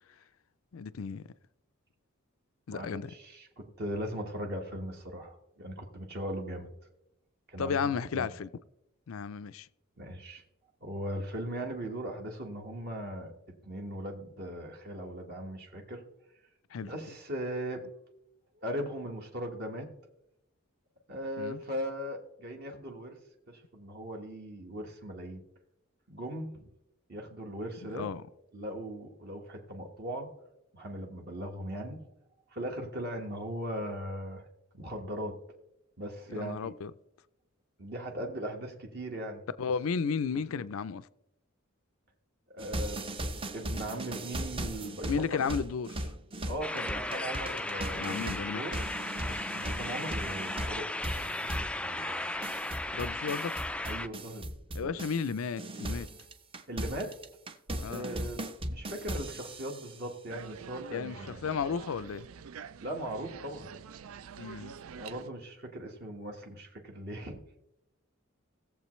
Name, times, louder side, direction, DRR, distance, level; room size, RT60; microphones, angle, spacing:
voice 1, 0.7-1.2 2.7-3.1 7.6-8.5 9.1-9.7 16.7-16.9 21.4-21.6 27.9-28.2 36.3-36.9 39.6-41.1 45.1-46.1 47.9-48.6 52.9-53.5 54.7-56.1 57.8-58.1 60.9-62.3 64.4-64.7, left 6 dB, 75° left, 0.4 m, -33 dB
voice 2, 2.7-6.7 7.5-8.3 10.0-10.4 10.8-16.0 16.8-17.9 18.5-19.9 21.1-23.2 23.5-25.4 26.1-26.6 27.1-28.1 28.5-30.3 30.7-32.0 32.5-34.5 34.7-35.4 36.0-36.7 37.8-39.4 42.5-43.0 43.5-45.5 46.4-48.3 48.5-48.8 49.1-52.2 53.8-54.5 54.8-54.9 56.7-57.1 57.9-61.6 62.8-63.7 64.9-67.4, right 1 dB, 50° right, 1.4 m, -39 dB
sound 1, 42.6-55.3 55.6-60.0, right 1 dB, 25° right, 0.7 m, -38 dB
sound 2, 46.6-54.1, left 2 dB, 5° left, 0.3 m, -36 dB
sound 3, 60.3-65.3, right 6 dB, 85° right, 0.4 m, -46 dB
17.5 x 7.4 x 3.1 m
head